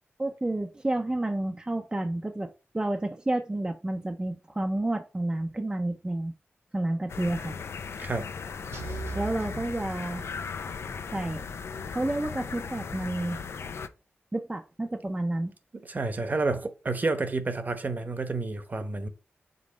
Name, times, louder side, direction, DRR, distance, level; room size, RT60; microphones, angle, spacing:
voice 1, 0.2-6.3 6.7-7.6 9.1-10.2 11.1-11.4 11.9-13.4 14.3-15.5, right 1 dB, 20° right, 0.6 m, -30 dB
sound 1, 7.1-13.9, left 6 dB, 75° left, 0.5 m, -37 dB
sound 2, 8.7-10.6, right 3 dB, 85° right, 1.7 m, -40 dB
voice 2, 15.8-19.1, right 3 dB, 40° right, 1.0 m, -30 dB
5.4 x 3.9 x 5.1 m
wide cardioid pair, 90°, 4 cm